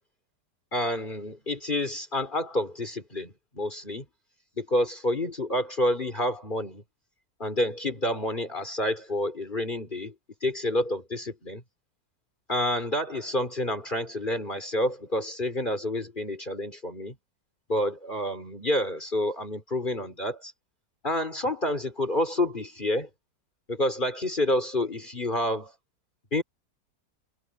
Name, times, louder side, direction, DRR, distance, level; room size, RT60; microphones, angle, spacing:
voice 1, 0.7-4.1 4.6-6.8 7.4-10.1 10.4-11.6 12.5-17.1 17.7-20.5 21.0-23.1 23.7-25.7 26.3-26.4, left 1 dB, 30° left, 3.7 m, -28 dB
omnidirectional pair, 1.7 m